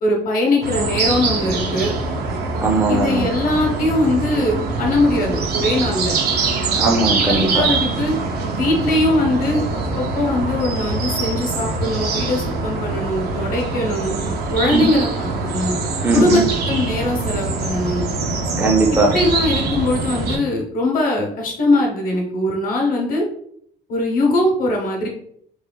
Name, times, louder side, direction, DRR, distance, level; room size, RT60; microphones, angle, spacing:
voice 1, 0.0-1.9 2.9-6.1 7.3-8.2 8.5-9.6 10.0-14.1 14.5-15.3 15.5-15.8 16.1-18.0 19.1-23.2 23.9-25.1, left 1 dB, 55° left, 0 dB, 0.9 m, -21 dB
sound 1, 0.6-20.4, right 3 dB, 70° right, 0.5 m, -23 dB
voice 2, 2.6-3.2 6.8-7.7 14.7-14.9 16.0-16.5 18.6-19.1, right 2 dB, 10° right, 0 dB, 0.5 m, -18 dB
3.1 x 2.0 x 2.2 m, 0.66 s
cardioid pair, 110°, 17 cm